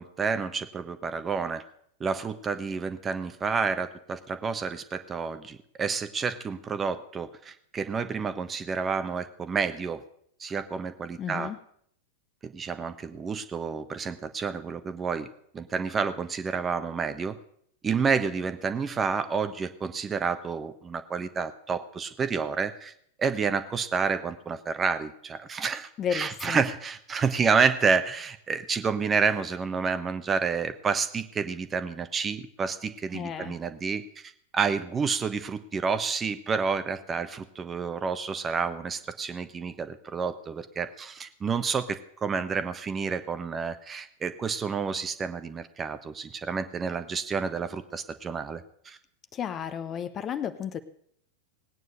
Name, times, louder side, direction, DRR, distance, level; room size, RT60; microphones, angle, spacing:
voice 1, 0.0-1.6 2.0-10.0 10.4-11.5 12.4-15.3 15.5-17.4 17.8-22.9 23.2-49.0, right 5 dB, 20° right, 11 dB, 1.2 m, -29 dB
voice 2, 11.2-11.6 26.0-26.6 33.1-33.6 49.3-50.8, left 8 dB, 30° left, 11 dB, 1.0 m, -32 dB
18.5 x 9.4 x 6.7 m, 0.67 s
figure-of-eight pair, 90°, 0 cm